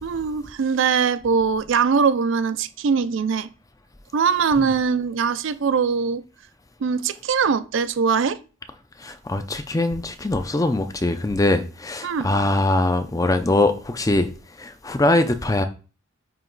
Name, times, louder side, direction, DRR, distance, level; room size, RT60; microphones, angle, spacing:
voice 1, 0.0-3.5 4.1-6.2 6.8-8.4 12.0-12.3, right 5 dB, 60° right, 0.4 m, -21 dB
voice 2, 9.0-14.3 14.6-15.6, left 2 dB, 15° left, 0.4 m, -22 dB
9.1 x 3.0 x 3.9 m
head